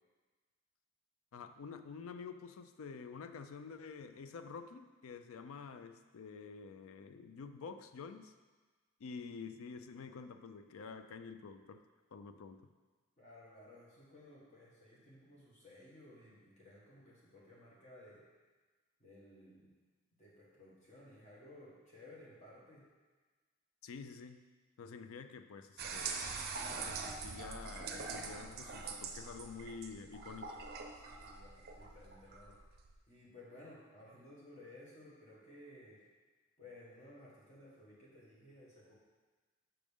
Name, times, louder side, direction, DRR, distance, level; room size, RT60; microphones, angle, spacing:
voice 1, 1.3-8.3 9.0-11.8 12.1-12.7 23.8-24.4 24.8-26.4 26.8-30.6, left 5 dB, 80° left, 9 dB, 0.4 m, -49 dB
voice 2, 13.2-18.2 19.0-19.7 20.2-22.8 30.9-32.6 33.1-36.0 36.6-38.9, left 1 dB, 35° left, -6 dB, 1.4 m, -57 dB
sound 1, 25.8-33.0, right 4 dB, 45° right, 0.5 m, -44 dB
6.3 x 5.8 x 3.5 m, 1.4 s
head